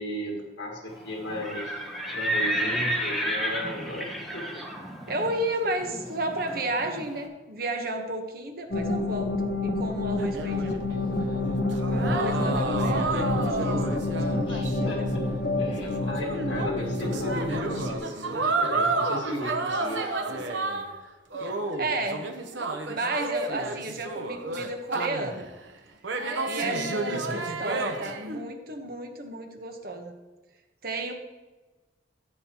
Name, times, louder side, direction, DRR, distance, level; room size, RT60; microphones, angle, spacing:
voice 1, 0.0-1.7 2.1-4.9 12.9-13.4 14.4-15.3 15.6-20.5 27.1-27.4, equal, 75° left, -1 dB, 1.8 m, -36 dB
Livestock farm animals working animals, 1.3-7.1, equal, ahead, 1.2 m, -31 dB
voice 2, 5.1-9.3 9.6-10.8 11.9-13.8 14.8-15.1 21.8-22.4 22.9-25.5 26.4-30.1 30.8-31.1, right 2 dB, 50° right, 4 dB, 1.0 m, -32 dB
sound 1, 8.7-18.0, left 2 dB, 50° left, 0.9 m, -28 dB
sound 2, 10.2-14.9 15.2-15.3 15.8-21.0 21.3-25.5 26.0-28.4, right 3 dB, 75° right, 0.9 m, -31 dB
14.0 x 7.6 x 2.9 m, 1.2 s
head